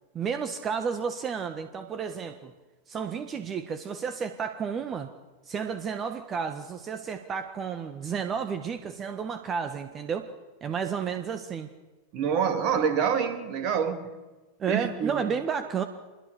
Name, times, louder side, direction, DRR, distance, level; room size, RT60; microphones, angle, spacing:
voice 1, 0.1-2.5 2.9-5.1 5.5-10.3 10.6-11.7 14.6-15.8, right 6 dB, 25° right, 1.4 m, -32 dB
voice 2, 12.1-14.1 14.7-15.2, right 7 dB, 40° right, 3.0 m, -26 dB
25.5 x 22.0 x 6.9 m
figure-of-eight pair, 90°, 0 cm